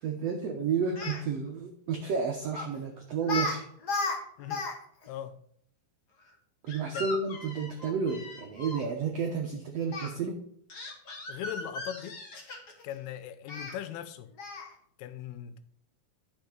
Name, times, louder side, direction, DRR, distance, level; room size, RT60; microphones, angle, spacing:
voice 1, 0.0-3.6 6.6-10.4, right 5 dB, 80° right, 1.4 m, -31 dB
Speech, 0.8-1.2 2.5-2.8 3.2-3.6 3.8-4.7 5.0-5.1 6.7-8.8 9.9-10.1 10.7-12.8 13.5-13.7 14.4-14.7, left 3 dB, 50° left, 1.2 m, -36 dB
voice 2, 5.1-5.4 6.9-7.1 11.3-12.2 12.8-14.3 15.0-15.6, left 11 dB, 90° left, 2.7 m, -39 dB
12.0 x 6.7 x 3.8 m
omnidirectional pair, 4.4 m